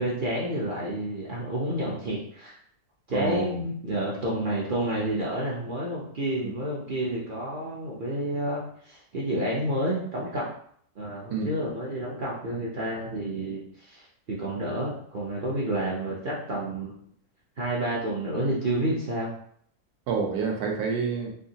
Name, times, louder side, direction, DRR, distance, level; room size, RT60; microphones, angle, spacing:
voice 1, 0.0-2.6 3.1-10.5 11.0-17.0 17.6-19.3, right 1 dB, 60° right, -4 dB, 0.5 m, -30 dB
voice 2, 3.1-3.6 6.4-6.5 11.3-11.5 20.1-21.3, right 5 dB, 85° right, 2 dB, 1.2 m, -28 dB
3.4 x 2.7 x 2.8 m, 0.63 s
omnidirectional pair, 1.6 m